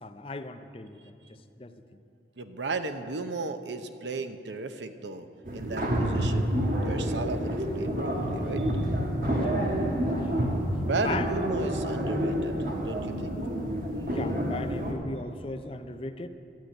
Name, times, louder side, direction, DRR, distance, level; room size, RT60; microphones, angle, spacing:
voice 1, 0.0-1.8 8.9-10.5 11.0-11.3 11.7-12.2 14.0-16.3, left 2 dB, 30° left, 9 dB, 0.5 m, -39 dB
voice 2, 2.4-5.3 5.5-6.5 6.8-8.9 10.8-13.3, right 3 dB, 85° right, 9 dB, 0.8 m, -35 dB
sound 1, 5.5-14.9, equal, 50° right, 1.5 m, -28 dB
sound 2, 11.1-12.8, left 1 dB, 5° right, 1.7 m, -42 dB
12.5 x 8.2 x 8.9 m, 2.6 s
head